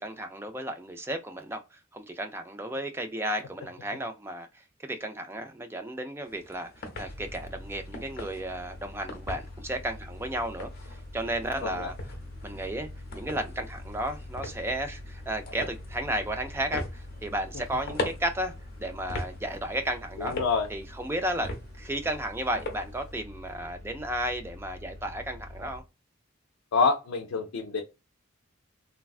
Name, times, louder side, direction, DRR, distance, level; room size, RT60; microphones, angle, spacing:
voice 1, 0.0-11.9 12.4-18.5 18.8-20.4 20.7-21.5 21.8-25.8, right 1 dB, 10° right, 0.3 m, -33 dB
sound 1, 6.2-23.1, left 2 dB, 50° left, 0.8 m, -42 dB
sound 2, 7.0-25.8, left 1 dB, 80° right, 0.9 m, -44 dB
voice 2, 20.2-20.7 26.7-27.8, left 4 dB, 90° left, 0.4 m, -26 dB
3.3 x 2.2 x 2.3 m
head